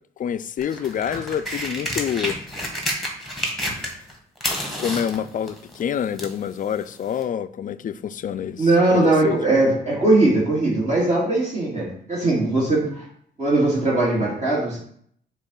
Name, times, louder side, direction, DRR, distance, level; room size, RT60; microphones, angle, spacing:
voice 1, 0.2-2.4 4.8-9.4, left 8 dB, 40° left, 0.4 m, -27 dB
sound 1, 0.6-4.1 4.4-6.4 7.2-7.3, equal, ahead, 1.6 m, -29 dB
voice 2, 8.6-13.1 13.4-14.8, right 2 dB, 35° right, 2.2 m, -20 dB
7.0 x 2.5 x 5.3 m
cardioid pair, 90°, 20 cm